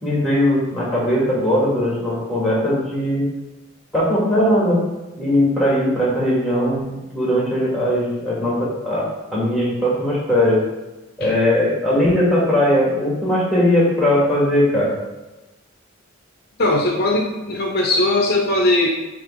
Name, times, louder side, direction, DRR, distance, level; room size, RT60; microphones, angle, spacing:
voice 1, 0.0-3.2 3.9-4.8 5.1-10.6 11.2-14.9, left 1 dB, ahead, -5 dB, 2.1 m, -19 dB
voice 2, 16.6-18.9, left 2 dB, 50° left, 0 dB, 0.7 m, -19 dB
8.6 x 3.1 x 3.7 m, 1.1 s
head